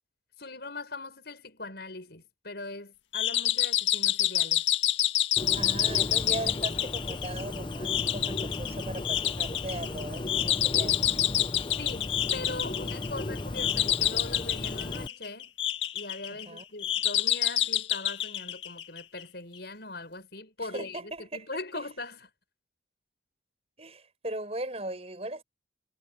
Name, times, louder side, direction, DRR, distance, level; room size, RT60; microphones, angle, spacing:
voice 1, 0.4-4.6 11.8-15.5 15.9-22.2, left 2 dB, 60° left, 7.3 m, -40 dB
sound 1, 3.1-19.2, left 12 dB, 85° left, 1.8 m, -28 dB
Bird, 5.4-15.1, left 2 dB, 25° left, 0.7 m, -36 dB
voice 2, 5.5-11.2 16.3-16.6 20.6-21.9 23.8-25.4, right 1 dB, 35° right, 6.0 m, -39 dB
head